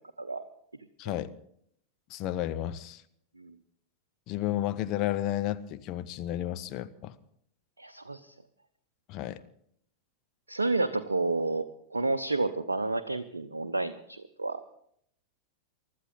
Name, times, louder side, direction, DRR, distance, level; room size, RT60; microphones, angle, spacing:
voice 1, 1.0-1.3 2.1-3.0 4.3-7.2 9.1-9.4, left 13 dB, 40° left, 0.8 m, -32 dB
voice 2, 7.8-8.3 10.5-14.6, right 3 dB, 80° right, 0.7 m, -30 dB
24.0 x 12.5 x 3.8 m
figure-of-eight pair, 90°, 0 cm